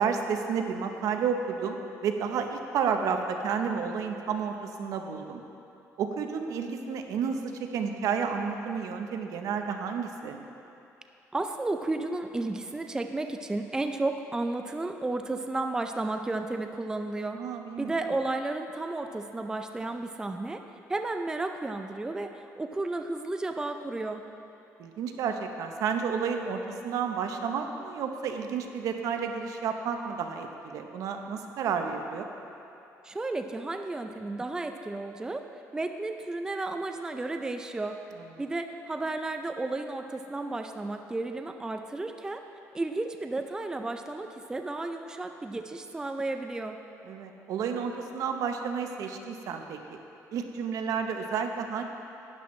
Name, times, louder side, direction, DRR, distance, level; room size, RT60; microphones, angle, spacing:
voice 1, 0.0-5.4 6.0-10.4 17.3-17.9 24.8-32.3 38.2-38.3 47.0-50.0 50.3-51.8, right 6 dB, 70° right, 5 dB, 0.8 m, -31 dB
voice 2, 11.3-17.4 17.8-20.6 20.9-24.2 33.0-35.5 35.7-38.0 38.4-42.4 42.7-46.8, right 2 dB, 10° right, 6 dB, 0.4 m, -33 dB
12.0 x 10.0 x 3.2 m, 2.8 s
cardioid pair, 120°, 6 cm